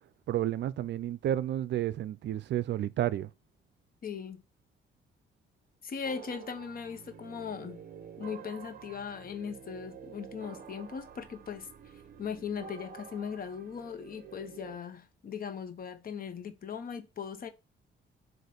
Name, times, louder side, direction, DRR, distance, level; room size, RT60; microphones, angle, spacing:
voice 1, 0.3-3.3, right 12 dB, 65° right, 0.5 m, -31 dB
voice 2, 4.0-4.4 5.8-7.8 8.2-11.7 12.2-17.5, left 6 dB, 45° left, 1.0 m, -39 dB
sound 1, 6.0-14.8, right 7 dB, 45° right, 0.8 m, -49 dB
7.7 x 2.6 x 5.2 m
cardioid pair, 90°, 20 cm